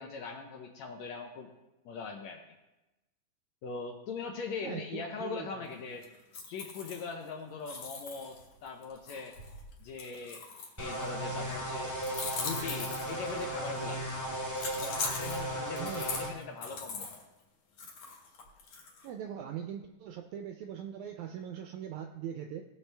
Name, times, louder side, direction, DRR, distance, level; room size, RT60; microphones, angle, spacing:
voice 1, 0.0-1.5 1.9-2.4 3.6-6.0 6.3-9.4 9.8-10.4 10.8-12.0 12.4-14.0 14.8-17.1, left 4 dB, 75° left, 2 dB, 1.7 m, -41 dB
voice 2, 4.6-5.5 15.8-16.1 19.0-22.6, right 9 dB, 80° right, 5 dB, 1.7 m, -41 dB
sound 1, 6.0-7.3 7.7-11.1 12.0-13.4 14.6-17.2 17.8-19.1, left 4 dB, 55° left, 2.5 m, -40 dB
sound 2, 10.8-16.3, right 1 dB, 5° left, 1.8 m, -36 dB
17.5 x 7.0 x 3.4 m, 1.0 s
omnidirectional pair, 3.9 m